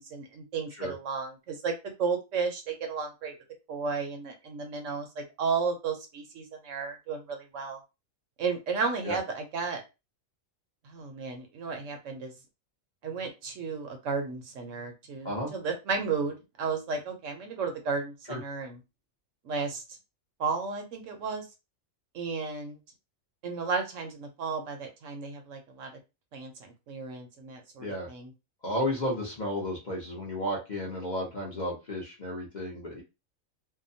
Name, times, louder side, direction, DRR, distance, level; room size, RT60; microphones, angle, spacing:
voice 1, 0.0-3.3 3.7-7.8 8.4-9.8 10.8-12.3 13.0-18.8 19.4-19.8 20.4-21.4 22.1-22.8 23.4-25.9 26.3-28.3, right 5 dB, 70° right, 4 dB, 1.0 m, -33 dB
voice 2, 28.6-33.0, left 1 dB, 40° left, -2 dB, 0.8 m, -33 dB
2.7 x 2.2 x 2.6 m, 0.26 s
omnidirectional pair, 1.4 m